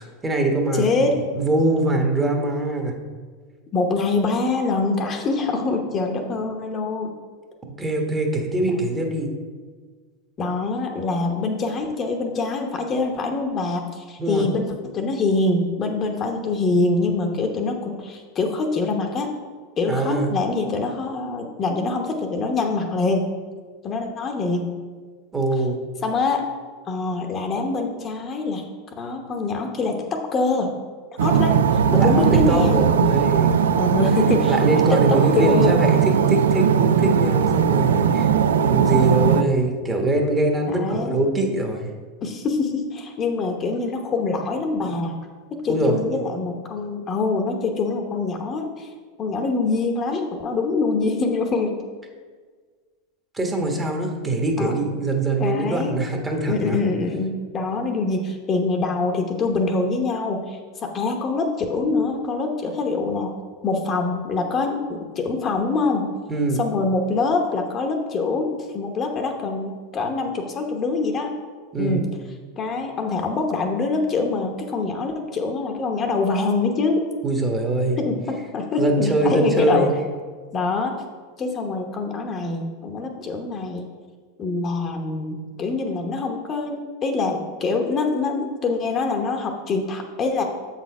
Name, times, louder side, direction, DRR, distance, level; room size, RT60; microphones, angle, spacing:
voice 1, 0.0-0.9 1.2-2.9 7.8-9.3 14.2-14.5 19.9-20.3 25.3-25.8 31.9-33.6 34.5-41.9 45.7-45.9 53.3-56.8 66.3-66.6 71.7-72.0 77.2-78.0 78.8-79.9, right 2 dB, 20° right, 2 dB, 1.2 m, -23 dB
voice 2, 0.7-1.2 3.7-7.1 8.7-8.8 10.4-19.3 19.8-23.3 23.8-24.8 26.0-26.4 26.9-28.6 29.0-30.7 31.2-31.5 31.9-32.8 33.8-34.6 34.9-35.8 40.7-41.2 42.2-45.2 45.5-48.9 49.2-51.8 54.6-54.8 55.4-56.0 56.5-63.3 63.6-66.1 66.6-71.3 71.8-72.1 72.6-77.0 78.0-79.9 80.5-81.0 81.4-83.9 84.4-90.4, left 3 dB, 35° left, 3 dB, 0.9 m, -24 dB
sound 1, 31.2-39.4, right 8 dB, 80° right, 0.3 m, -19 dB
7.2 x 4.2 x 4.7 m, 1.5 s
hypercardioid pair, 95°, 0 cm